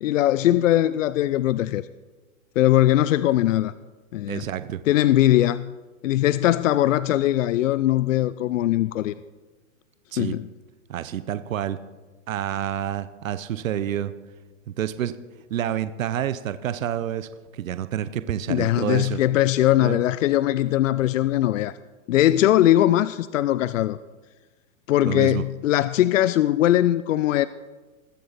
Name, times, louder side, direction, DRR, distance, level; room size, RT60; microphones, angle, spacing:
voice 1, 0.0-1.8 2.6-3.7 4.1-4.5 4.9-5.7 6.0-9.1 10.2-10.5 18.5-21.8 22.1-24.0 24.9-27.5, left 13 dB, 70° left, 16 dB, 0.5 m, -20 dB
voice 2, 4.3-4.8 10.1-10.3 10.9-11.8 12.3-14.1 14.7-15.1 15.5-19.2 19.8-20.0 25.1-25.4, right 10 dB, 80° right, 13 dB, 0.8 m, -28 dB
21.0 x 7.7 x 4.1 m, 1.3 s
hypercardioid pair, 140°, 40 cm